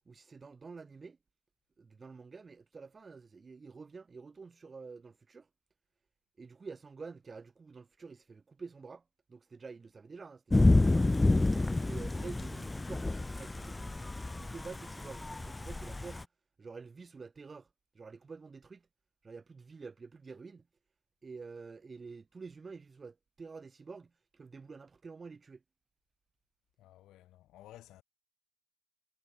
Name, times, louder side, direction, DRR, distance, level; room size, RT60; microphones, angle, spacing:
voice 1, 0.1-1.2 1.8-5.5 6.4-9.0 9.3-11.1 11.5-14.0 14.3-16.3 16.6-17.7 17.9-18.9 19.2-20.7 21.2-25.6, right 4 dB, 35° right, 3.6 m, -48 dB
Thunder / Rain, 10.5-16.2, left 2 dB, 15° left, 0.7 m, -29 dB
voice 2, 26.8-28.0, left 14 dB, 85° left, 4.5 m, -55 dB
cardioid pair, 90°, 0 cm